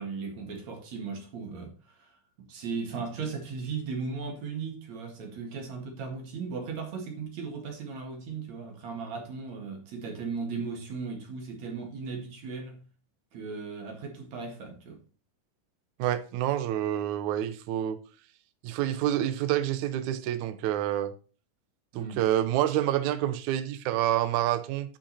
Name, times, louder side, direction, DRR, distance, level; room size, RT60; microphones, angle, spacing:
voice 1, 0.0-12.8 13.3-15.0 21.9-22.2, right 5 dB, 55° right, 3.1 m, -37 dB
voice 2, 16.0-18.0 18.6-21.1 22.0-25.0, right 12 dB, 70° right, 1.9 m, -28 dB
10.5 x 5.5 x 4.2 m
omnidirectional pair, 4.1 m